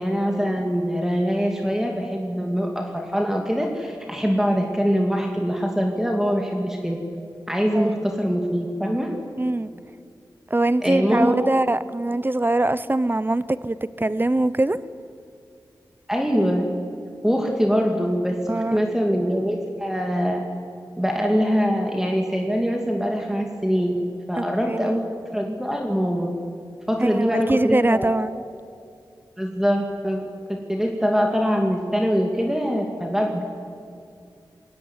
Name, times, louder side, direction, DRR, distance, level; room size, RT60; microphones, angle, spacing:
voice 1, 0.0-7.0 7.5-9.1 10.8-11.5 16.1-16.7 17.2-20.4 21.0-23.9 24.3-26.3 26.9-28.3 29.4-30.2 30.5-33.4, equal, 5° right, 1 dB, 2.8 m, -23 dB
voice 2, 9.4-9.7 10.5-14.8 18.5-18.8 24.4-25.0 27.0-28.4, right 2 dB, 25° right, 16 dB, 0.8 m, -23 dB
21.5 x 17.0 x 9.7 m, 2.4 s
cardioid pair, 50°, 8 cm